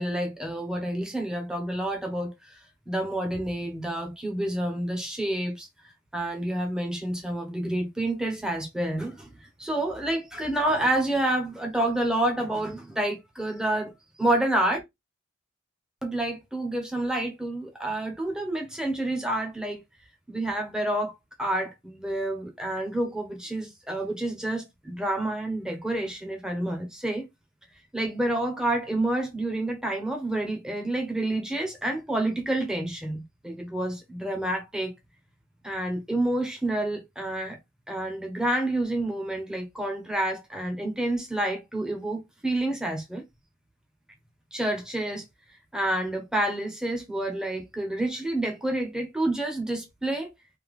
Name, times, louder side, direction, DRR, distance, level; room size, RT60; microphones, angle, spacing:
voice 1, 0.0-5.7 6.1-13.9 14.2-14.8 16.0-19.8 20.3-27.3 27.9-34.9 35.6-37.6 37.9-43.2 44.5-45.2 45.7-50.3, right 1 dB, 5° right, 1.0 m, -29 dB
3.4 x 2.9 x 3.6 m
head